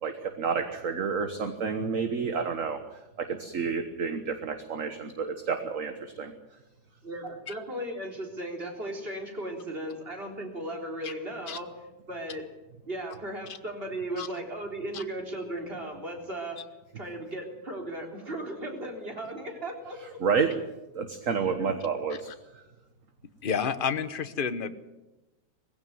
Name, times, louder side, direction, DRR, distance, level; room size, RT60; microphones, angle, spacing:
voice 1, 0.0-6.3 20.0-20.5 20.9-22.6, right 5 dB, 50° right, 8 dB, 1.6 m, -30 dB
voice 2, 7.0-12.5 12.8-16.7 17.0-20.2 21.6-21.7, right 1 dB, 30° right, 2 dB, 3.9 m, -36 dB
voice 3, 23.4-24.7, left 6 dB, 35° left, 11 dB, 1.0 m, -30 dB
20.5 x 16.0 x 9.4 m, 1.0 s
omnidirectional pair, 2.0 m